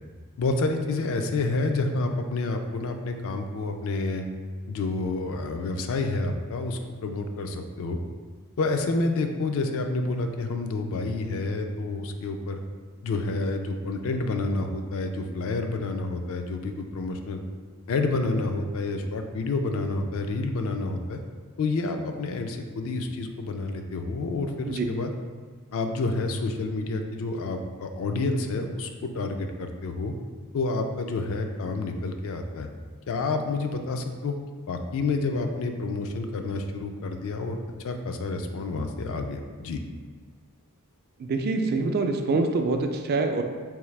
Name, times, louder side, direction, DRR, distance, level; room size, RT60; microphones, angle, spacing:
voice 1, 0.4-4.3 4.7-8.0 8.6-12.6 13.0-17.4 17.9-21.2 21.6-25.1 25.7-30.1 30.5-32.7 33.1-34.3 34.7-39.8, left 3 dB, 65° left, 5 dB, 0.4 m, -29 dB
voice 2, 41.2-43.4, right 3 dB, 45° right, 5 dB, 0.3 m, -25 dB
3.6 x 2.8 x 3.2 m, 1.5 s
head